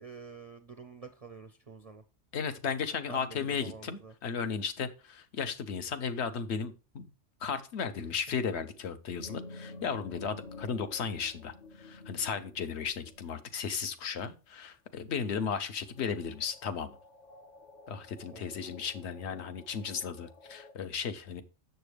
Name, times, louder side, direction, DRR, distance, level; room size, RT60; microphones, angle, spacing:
voice 1, 0.0-2.0 3.1-4.1 7.9-8.1 18.3-18.4, right 5 dB, 45° right, 7 dB, 0.5 m, -48 dB
voice 2, 2.3-7.1 7.4-17.0 17.9-21.4, left 6 dB, 65° left, 10 dB, 1.0 m, -35 dB
sound 1, 9.1-13.4 15.4-15.5 15.9-20.7, left 2 dB, 45° left, 0.6 m, -50 dB
6.9 x 6.7 x 3.3 m, 0.32 s
omnidirectional pair, 1.2 m